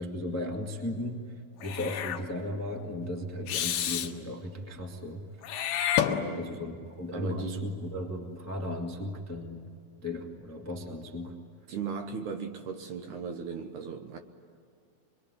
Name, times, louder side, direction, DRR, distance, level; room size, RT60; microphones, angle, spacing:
voice 1, 0.0-1.3 1.6-5.3 6.3-9.7 10.0-11.4, left 1 dB, 20° left, 1 dB, 0.4 m, -36 dB
Meow / Hiss, 1.6-2.2 3.5-4.1 5.4-6.7, left 10 dB, 85° left, 3.2 m, -30 dB
voice 2, 6.1-6.5 7.1-7.7 11.7-14.2, right 6 dB, 70° right, 6 dB, 2.1 m, -37 dB
25.0 x 23.0 x 9.9 m, 2.3 s
omnidirectional pair, 4.5 m